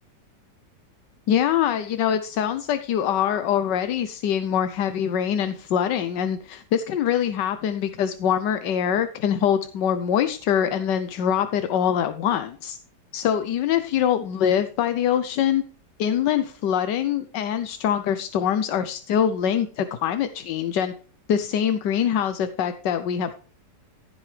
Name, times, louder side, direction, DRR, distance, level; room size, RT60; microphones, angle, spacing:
voice 1, 1.3-12.8 13.1-15.6 16.0-20.9 21.3-23.3, left 9 dB, 85° left, 10 dB, 1.5 m, -24 dB
15.5 x 8.1 x 3.4 m, 0.42 s
omnidirectional pair, 1.8 m